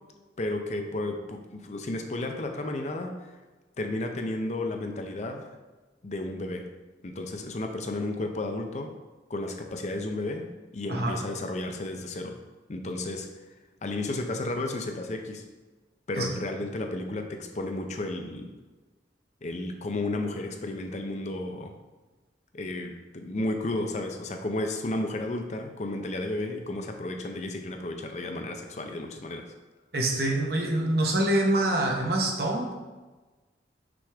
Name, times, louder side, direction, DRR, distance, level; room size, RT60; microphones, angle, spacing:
voice 1, 0.4-3.3 3.8-5.5 6.0-6.6 7.0-8.9 9.3-10.4 10.7-12.3 12.7-13.3 13.8-15.4 16.1-18.5 19.4-21.7 22.5-29.4, left 2 dB, 40° left, 4 dB, 0.6 m, -33 dB
voice 2, 29.9-32.7, right 1 dB, 60° right, 0 dB, 1.0 m, -25 dB
6.1 x 3.4 x 4.9 m, 1.2 s
head